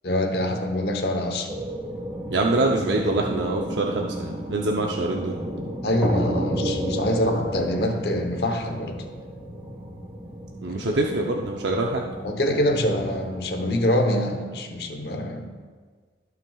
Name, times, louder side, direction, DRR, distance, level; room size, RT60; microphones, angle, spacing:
voice 1, 0.0-1.5 5.8-9.1 10.7-11.0 12.2-15.5, left 1 dB, 60° left, 5 dB, 1.0 m, -25 dB
sound 1, 1.5-13.4, right 1 dB, 10° right, 1.4 m, -32 dB
voice 2, 2.3-5.4 10.6-12.1, right 2 dB, 85° right, 0 dB, 0.7 m, -24 dB
17.0 x 6.0 x 2.4 m, 1.5 s
head